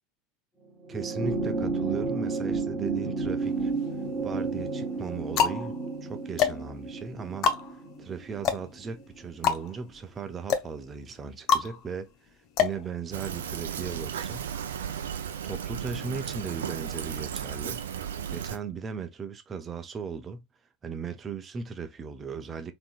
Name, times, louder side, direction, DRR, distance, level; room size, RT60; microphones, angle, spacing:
sound 1, 0.8-9.5 10.7-10.8, right 4 dB, 10° left, 1.5 m, -32 dB
voice 1, 0.9-3.7 4.2-7.5 8.0-12.3 12.6-14.5 15.4-17.8 18.3-20.5 20.8-22.7, right 5 dB, 25° right, 0.7 m, -37 dB
sound 2, 3.4-4.1 4.8-13.6, left 7 dB, 45° left, 0.7 m, -29 dB
Fill (with liquid), 13.1-18.6, right 8 dB, 75° right, 0.5 m, -35 dB
3.7 x 2.9 x 2.4 m
figure-of-eight pair, 80°, 0 cm